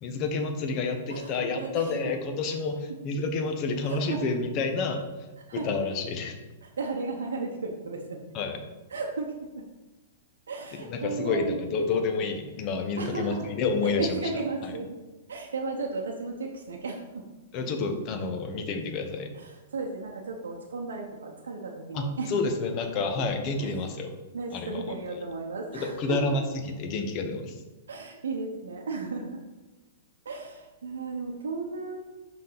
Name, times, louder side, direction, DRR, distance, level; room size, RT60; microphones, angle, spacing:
voice 1, 0.0-5.0 5.6-6.4 8.3-8.6 10.8-14.2 14.6-14.7 17.5-19.3 21.9-24.1 24.5-25.0 25.7-26.4 26.8-27.6, left 4 dB, 40° left, 5 dB, 1.0 m, -29 dB
voice 2, 1.1-2.0 2.5-2.6 3.8-4.2 5.5-5.7 6.6-8.2 8.9-9.7 10.5-12.0 13.0-13.5 13.8-15.0 15.3-17.3 19.3-22.3 23.6-23.7 24.3-26.3 27.9-29.4 30.2-32.0, right 3 dB, 75° right, 0 dB, 0.8 m, -34 dB
5.5 x 5.2 x 3.9 m, 1.2 s
hypercardioid pair, 110°, 0 cm